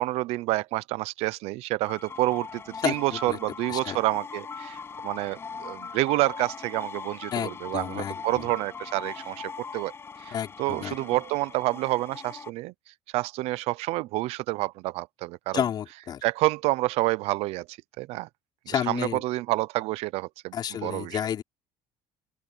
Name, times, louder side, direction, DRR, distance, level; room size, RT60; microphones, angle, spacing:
voice 1, 0.0-9.9 10.2-10.3 10.6-15.6 16.2-18.3 18.7-20.5 20.8-21.2, right 19 dB, 70° right, 0.5 m, -28 dB
sound 1, 1.8-12.5, left 5 dB, 20° left, 6.6 m, -40 dB
voice 2, 2.8-3.4 3.7-4.0 7.3-8.5 10.3-11.0 15.5-16.2 18.7-19.2 20.5-21.4, left 9 dB, 40° left, 5.3 m, -31 dB
open air
cardioid pair, 155°, 11 cm